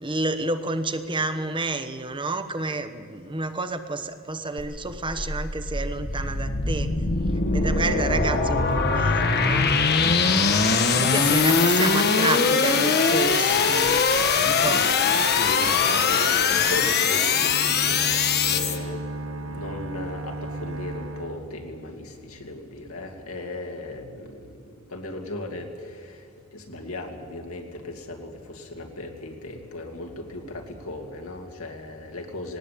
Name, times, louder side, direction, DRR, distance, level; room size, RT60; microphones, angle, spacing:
voice 1, 0.0-6.9 7.5-9.7 11.0-14.1 14.4-14.8, right 2 dB, 25° right, 9 dB, 1.0 m, -29 dB
sound 1, 4.6-18.8, left 5 dB, 50° left, 1.3 m, -22 dB
voice 2, 7.2-7.6 14.3-19.0 19.5-24.5 24.9-26.2 26.5-32.6, left 1 dB, 80° left, 3 dB, 2.5 m, -37 dB
sound 2, 17.3-22.3, right 2 dB, 65° right, 1.1 m, -35 dB
18.5 x 18.5 x 8.5 m, 2.2 s
head